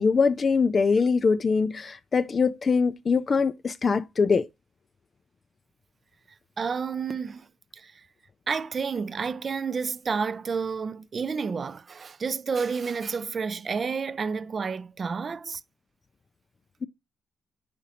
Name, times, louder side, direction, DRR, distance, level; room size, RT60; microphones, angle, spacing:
voice 1, 0.0-4.5, left 5 dB, 35° left, 0.3 m, -23 dB
voice 2, 6.6-7.5 7.7-8.0 8.5-15.6, right 5 dB, 35° right, 0.4 m, -30 dB
5.2 x 5.1 x 4.1 m
cardioid pair, 120°, 0 cm